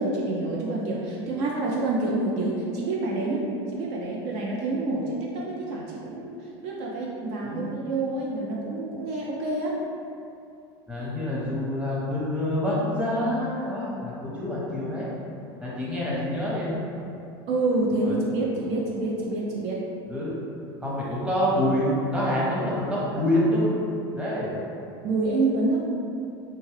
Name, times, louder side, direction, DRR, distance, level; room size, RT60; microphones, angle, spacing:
voice 1, 0.0-6.3 6.6-9.8 17.5-19.8 25.0-26.1, right 2 dB, 60° right, -3 dB, 0.5 m, -27 dB
voice 2, 10.9-15.1 15.6-16.8 18.0-18.2 20.1-20.3 20.8-23.7 24.1-24.5, left 1 dB, 10° right, -7 dB, 0.8 m, -26 dB
2.7 x 2.2 x 3.1 m, 2.6 s
supercardioid pair, 115°, 13 cm